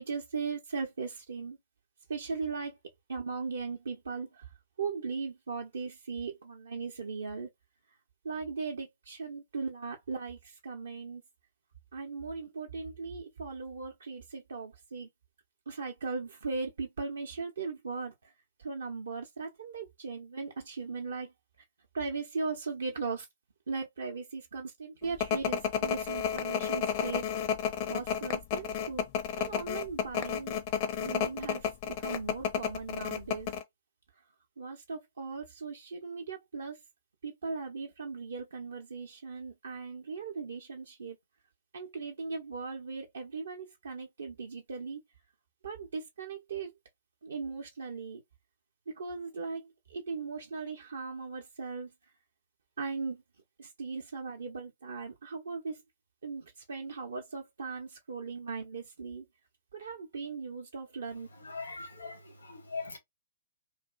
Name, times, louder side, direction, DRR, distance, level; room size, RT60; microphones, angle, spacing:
voice 1, 0.0-1.6 2.1-2.8 3.1-4.5 4.8-7.5 8.2-11.2 11.9-15.1 15.7-18.3 18.6-21.3 21.9-23.3 23.7-27.2 27.9-29.1 29.4-30.6 31.0-33.5 34.6-36.8 37.2-41.2 41.7-45.0 45.6-46.7 47.2-48.2 48.9-51.9 52.8-53.2 53.6-55.8 56.2-59.3 59.7-61.3, right 4 dB, 65° right, 0.6 m, -38 dB
sound 1, 25.2-33.6, left 8 dB, 35° left, 0.5 m, -31 dB
voice 2, 61.4-63.0, left 4 dB, 75° left, 1.0 m, -41 dB
2.5 x 2.4 x 2.3 m
figure-of-eight pair, 120°, 0 cm